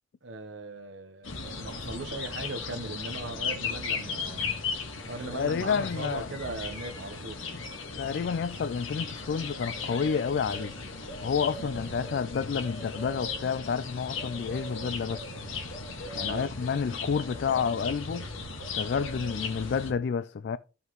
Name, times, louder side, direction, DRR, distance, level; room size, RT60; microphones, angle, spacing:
voice 1, 0.2-7.4 16.2-16.5, right 3 dB, 60° right, 0.9 m, -39 dB
sound 1, 1.2-19.9, left 4 dB, 85° left, 1.6 m, -36 dB
voice 2, 5.3-6.3 8.0-10.7 11.2-15.2 16.1-18.3 18.8-20.6, left 6 dB, 55° left, 0.3 m, -30 dB
13.0 x 5.5 x 3.1 m
head